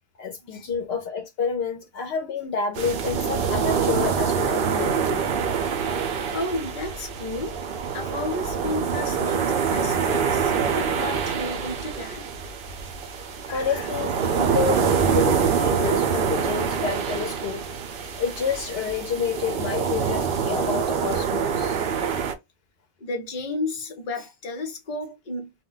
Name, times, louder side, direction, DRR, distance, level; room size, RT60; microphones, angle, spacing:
voice 1, 0.2-5.2 13.5-17.6 18.2-21.8, left 6 dB, 75° left, 0.8 m, -29 dB
sound 1, 2.7-22.3, right 6 dB, 65° right, 0.7 m, -25 dB
voice 2, 6.3-7.6 7.9-12.3 13.5-13.9 23.0-25.5, left 2 dB, 50° left, 0.8 m, -32 dB
2.2 x 2.2 x 3.8 m
omnidirectional pair, 1.1 m